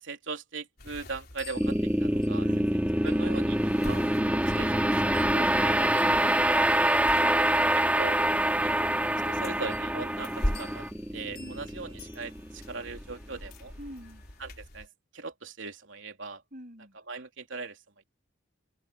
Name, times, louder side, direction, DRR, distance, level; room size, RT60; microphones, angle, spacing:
voice 1, 0.0-2.5 3.0-4.0 4.6-6.0 7.7-8.2 8.5-8.7 9.3-10.8 11.1-13.7 14.4-14.9 15.1-16.4 17.1-17.8, right 4 dB, 90° right, 3.2 m, -40 dB
sound 1, 0.8-14.9, left 1 dB, 55° left, 3.8 m, -41 dB
sound 2, 1.6-12.8, right 1 dB, 10° right, 2.3 m, -26 dB
voice 2, 2.4-2.8 7.2-7.7 11.4-11.8 13.8-14.2 16.5-17.0, equal, 45° right, 7.4 m, -45 dB
head